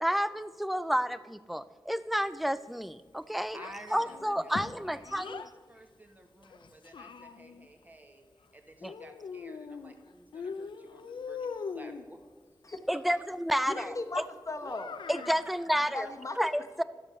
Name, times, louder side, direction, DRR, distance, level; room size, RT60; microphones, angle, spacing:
voice 1, 0.0-3.6 3.9-5.4 8.8-8.9 12.9-14.2 15.1-16.1 16.4-16.8, equal, ahead, 15 dB, 0.4 m, -30 dB
Child speech kid speaking, 3.5-5.5 6.4-7.7 8.8-10.0 10.3-12.1 14.6-15.5, left 5 dB, 90° left, 0.5 m, -41 dB
voice 2, 3.5-12.2 12.9-13.2 15.4-15.5, right 1 dB, 20° right, 4 dB, 1.4 m, -52 dB
voice 3, 13.7-15.0 15.9-16.4, left 2 dB, 40° left, 6 dB, 1.1 m, -37 dB
11.5 x 6.2 x 6.6 m, 1.5 s
wide cardioid pair, 70°, 8 cm